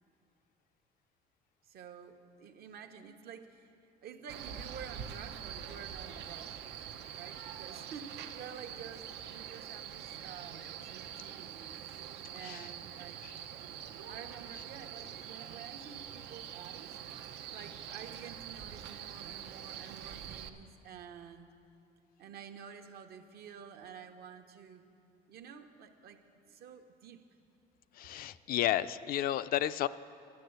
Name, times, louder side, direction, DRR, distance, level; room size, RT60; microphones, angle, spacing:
voice 1, 1.6-3.7 4.0-6.6 7.1-11.8 12.3-13.2 14.1-17.0 17.5-21.5 22.2-24.8 25.3-26.2 26.5-27.2, right 7 dB, 70° right, 7 dB, 0.9 m, -50 dB
Male speech man speaking, 4.3-20.5, right 9 dB, 90° right, 0.7 m, -45 dB
voice 2, 28.0-29.9, left 12 dB, 60° left, 14 dB, 0.4 m, -32 dB
11.5 x 9.6 x 7.8 m, 2.6 s
cardioid pair, 110°, 17 cm